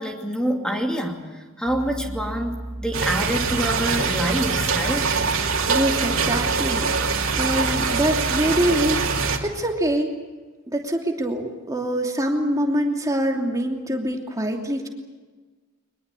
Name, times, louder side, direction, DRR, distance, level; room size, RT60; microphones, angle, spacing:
voice 1, 0.0-5.2, equal, 5° left, 2 dB, 2.6 m, -26 dB
sound 1, 1.7-9.3, right 1 dB, 60° right, 2.6 m, -34 dB
sound 2, 2.9-9.4, right 5 dB, 90° right, 2.8 m, -24 dB
voice 2, 5.7-10.1 10.7-14.9, right 1 dB, 15° right, 1 dB, 2.8 m, -25 dB
23.0 x 21.0 x 8.4 m, 1.3 s
head